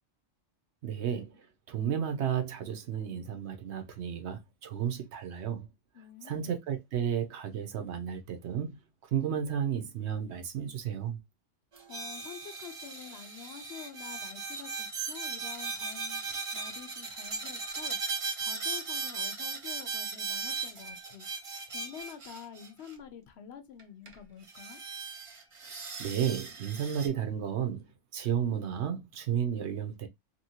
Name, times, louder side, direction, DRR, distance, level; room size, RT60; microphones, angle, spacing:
voice 1, 0.8-5.7 6.2-8.8 9.1-11.2 26.0-30.1, right 8 dB, 70° right, 0.9 m, -33 dB
voice 2, 5.9-6.5 11.9-16.2 16.5-18.0 18.4-21.3 21.7-24.8, left 8 dB, 65° left, 0.8 m, -48 dB
sound 1, 11.7-22.9 23.8-23.9 24.1-24.2 24.5-27.1, right 4 dB, 35° right, 0.5 m, -37 dB
2.9 x 2.7 x 2.7 m
omnidirectional pair, 1.2 m